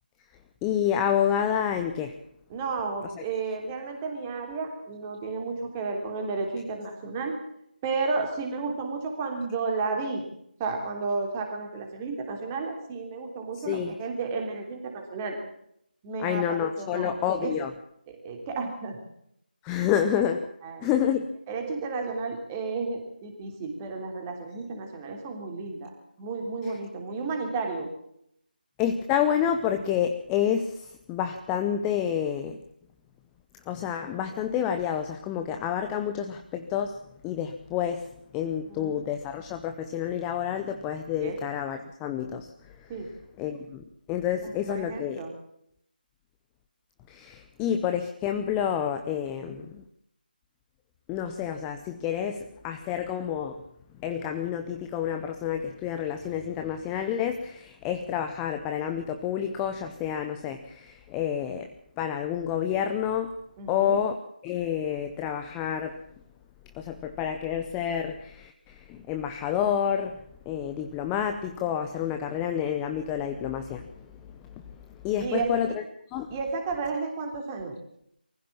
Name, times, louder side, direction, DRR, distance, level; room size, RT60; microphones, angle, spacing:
voice 1, 0.6-2.1 3.2-3.3 13.5-13.9 16.2-17.7 19.6-20.5 20.8-21.3 26.6-26.7 28.8-32.6 33.7-42.9 43.4-45.2 47.1-49.8 51.1-53.6 54.0-63.4 63.7-64.2 64.4-66.0 66.7-70.2 70.5-75.8 76.1-76.3, left 9 dB, 10° left, 6 dB, 0.7 m, -29 dB
voice 2, 2.5-7.4 7.8-10.2 10.6-15.4 16.0-17.1 17.4-17.5 18.2-19.0 20.6-20.9 21.5-25.9 26.2-27.9 38.7-39.0 41.2-41.4 42.9-43.1 44.4-45.3 49.4-49.6 63.6-64.0 75.2-75.5 76.3-77.8, right 4 dB, 15° right, 3 dB, 3.3 m, -32 dB
23.5 x 15.5 x 7.4 m, 0.74 s
figure-of-eight pair, 160°, 5 cm